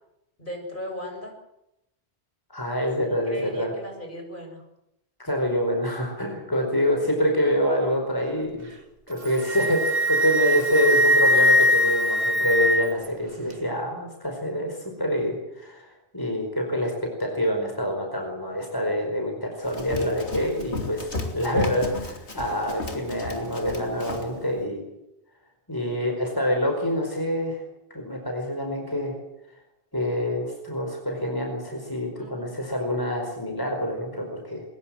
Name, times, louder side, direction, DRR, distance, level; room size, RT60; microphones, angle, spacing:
voice 1, 0.4-1.4 3.1-4.6 32.2-32.5, equal, 50° left, 2 dB, 7.4 m, -37 dB
voice 2, 2.5-3.7 5.2-8.7 9.1-15.9 16.1-16.9 17.2-24.9 25.7-27.6 27.9-29.1 29.9-34.6, equal, 20° left, 2 dB, 4.9 m, -26 dB
Wind instrument woodwind instrument, 9.1-13.1, equal, 55° right, 2.4 m, -21 dB
Run, 19.6-24.4, left 3 dB, 85° left, 3.4 m, -34 dB
22.0 x 21.0 x 7.7 m, 0.85 s
omnidirectional pair, 1.1 m